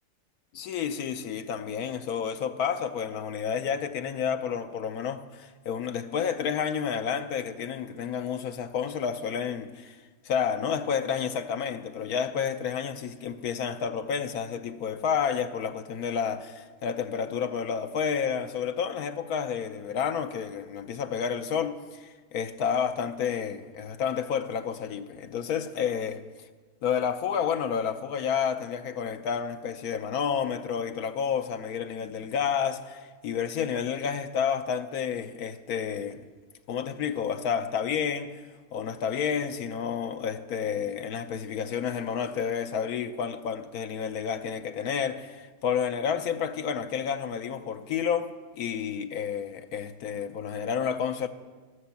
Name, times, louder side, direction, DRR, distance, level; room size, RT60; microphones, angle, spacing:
voice 1, 0.5-10.0 10.2-26.2 26.8-36.2 36.7-38.4 38.7-51.3, left 7 dB, 70° left, 1.2 m, -30 dB
14.0 x 11.5 x 7.1 m
omnidirectional pair, 1.7 m